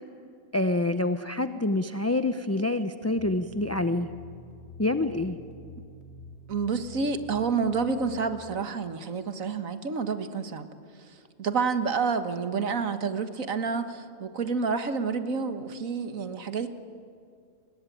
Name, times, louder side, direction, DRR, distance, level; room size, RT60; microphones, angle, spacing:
voice 1, 0.5-4.1 4.8-5.4, left 2 dB, 15° left, 9 dB, 0.6 m, -27 dB
sound 1, 3.0-8.4, left 2 dB, 55° left, 2.4 m, -47 dB
voice 2, 6.5-10.7 11.4-16.7, right 5 dB, 85° right, 9 dB, 1.9 m, -29 dB
30.0 x 21.5 x 9.2 m, 2.4 s
omnidirectional pair, 1.4 m